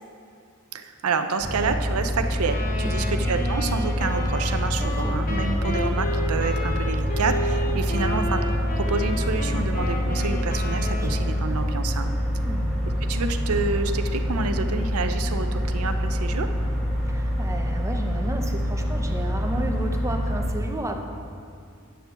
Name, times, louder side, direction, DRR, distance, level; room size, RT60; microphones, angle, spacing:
voice 1, 0.7-12.1 13.0-16.5, right 4 dB, 70° right, 7 dB, 0.6 m, -28 dB
sound 1, 1.4-20.5, equal, ahead, 1.3 m, -26 dB
Wind instrument woodwind instrument, 2.5-11.5, left 1 dB, 40° left, 0.8 m, -33 dB
voice 2, 2.8-3.3 4.8-5.2 8.1-8.3 11.0-11.2 12.4-12.6 17.0-21.0, right 1 dB, 15° right, 3 dB, 0.7 m, -33 dB
9.2 x 4.5 x 7.0 m, 2.2 s
head